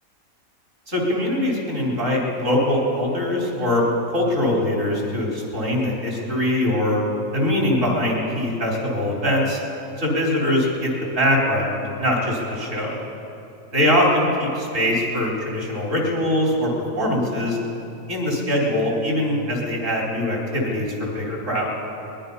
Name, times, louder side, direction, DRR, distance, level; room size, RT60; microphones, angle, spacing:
voice 1, 0.9-7.0 7.3-9.6 10.0-13.0 13.7-16.7 16.9-17.6 18.1-21.7, left 1 dB, 60° right, -3 dB, 4.7 m, -22 dB
23.0 x 21.0 x 5.7 m, 2.9 s
omnidirectional pair, 1.5 m